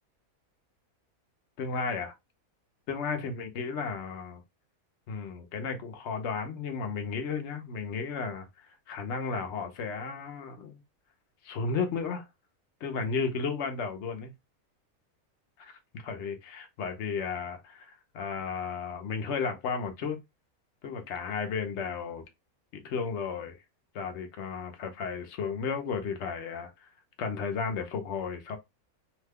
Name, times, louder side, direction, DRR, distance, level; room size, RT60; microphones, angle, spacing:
voice 1, 1.6-2.1 2.9-4.4 5.1-10.8 11.4-12.3 12.8-14.3 15.6-20.2 20.8-22.2 22.7-23.6 23.9-26.7 27.2-28.6, left 5 dB, 60° left, 0.9 m, -34 dB
2.8 x 2.2 x 3.4 m
omnidirectional pair, 1.5 m